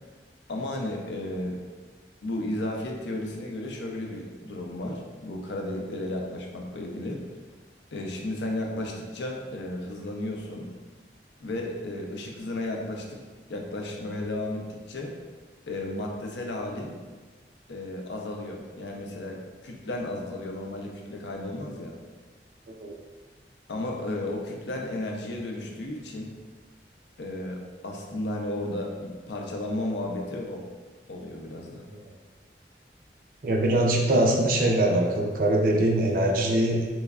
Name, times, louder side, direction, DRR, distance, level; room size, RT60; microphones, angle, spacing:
voice 1, 0.5-1.6 2.2-7.2 7.9-10.7 11.4-13.2 13.5-15.1 15.7-17.0 17.7-22.0 23.7-26.4 27.2-30.6 31.1-31.8, left 1 dB, 85° left, 0 dB, 0.5 m, -33 dB
voice 2, 33.4-36.8, right 1 dB, 50° right, 1 dB, 0.4 m, -23 dB
3.3 x 3.1 x 2.3 m, 1.4 s
head